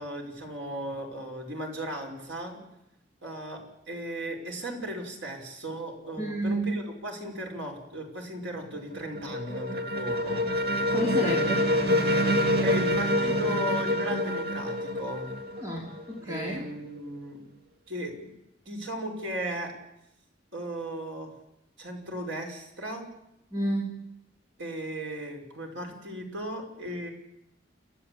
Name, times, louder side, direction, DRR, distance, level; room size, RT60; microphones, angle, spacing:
voice 1, 0.0-2.6 3.2-3.6 3.9-10.4 11.2-11.5 12.6-15.4 16.2-17.4 17.9-18.3 18.7-19.7 20.5-21.3 21.8-23.1 24.6-27.1, right 1 dB, 85° right, 2 dB, 5.6 m, -36 dB
voice 2, 6.2-6.7 10.9-11.6 15.6-16.6 23.5-24.0, right 1 dB, 20° right, -2 dB, 2.9 m, -30 dB
sound 1, 8.6-16.3, equal, 55° right, 2.6 m, -27 dB
30.0 x 13.0 x 8.6 m, 0.87 s
head